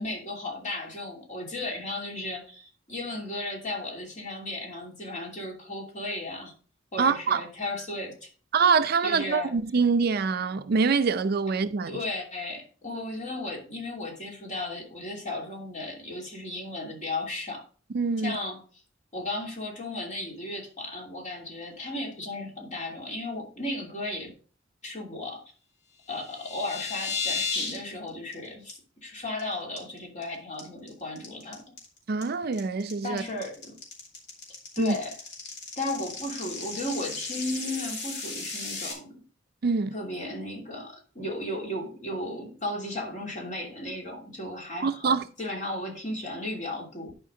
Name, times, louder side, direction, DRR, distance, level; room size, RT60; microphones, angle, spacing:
voice 1, 0.0-6.5 6.9-8.3 9.0-9.5 11.9-17.6 18.2-18.6 19.1-24.3 24.8-25.4 26.1-28.8 29.0-31.6 33.0-33.7 34.8-35.1 35.8-39.1 39.9-45.1 45.4-47.1, left 2 dB, 40° left, 2.9 m, -35 dB
voice 2, 7.0-7.4 8.5-12.0 17.9-18.4 32.1-33.2 34.8-34.9 39.6-39.9 44.8-45.2, right 5 dB, 55° right, 0.5 m, -25 dB
sound 1, 26.1-27.8 28.1-28.3 28.7-28.8 29.1-29.4 29.8-30.2 30.6-38.9, left 4 dB, 60° left, 2.9 m, -35 dB
11.0 x 5.1 x 3.8 m
head